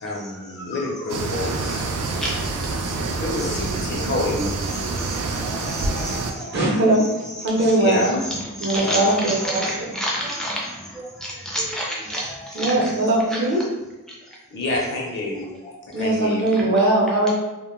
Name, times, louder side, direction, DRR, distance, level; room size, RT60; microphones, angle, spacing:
voice 1, 0.0-1.9 3.1-4.5 7.8-8.2 8.8-9.2 12.7-13.1 14.5-15.5 16.0-16.5, left 2 dB, 55° left, -1 dB, 0.6 m, -28 dB
sound 1, 1.1-6.3, right 3 dB, 85° right, 0.3 m, -27 dB
voice 2, 4.9-6.6 7.5-7.6 8.6-13.4 15.3-15.8, equal, ahead, -4 dB, 0.4 m, -30 dB
voice 3, 6.5-7.1 7.4-8.2 8.6-9.7 12.5-13.6 15.9-17.3, right 1 dB, 50° right, -4 dB, 0.6 m, -20 dB
2.2 x 2.2 x 3.0 m, 1.1 s
head